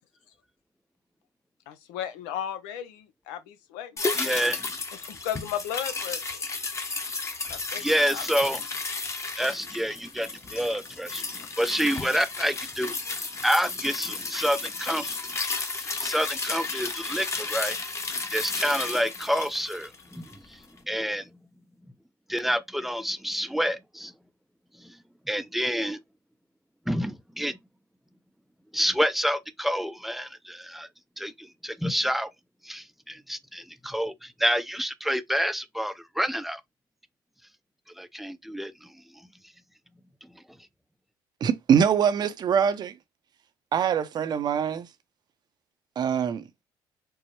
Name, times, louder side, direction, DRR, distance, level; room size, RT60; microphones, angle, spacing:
voice 1, 1.7-4.4 5.0-6.2 7.5-7.8 8.1-8.2, left 10 dB, 90° left, 0.6 m, -35 dB
sound 1, 4.0-20.5 20.8-20.9, left 3 dB, 30° left, 0.9 m, -33 dB
voice 2, 4.1-4.7 7.8-8.7 9.4-15.2 15.8-17.8 18.3-20.6 20.9-21.3 22.3-24.1 24.8-25.0 25.3-26.0 26.9-27.6 28.7-30.9 31.2-32.3 32.6-36.6 38.0-38.9, equal, ahead, 0.5 m, -28 dB
voice 3, 41.4-42.9 43.7-44.9 46.0-46.4, right 7 dB, 50° right, 0.6 m, -23 dB
4.6 x 2.0 x 3.0 m
supercardioid pair, 80°, 9 cm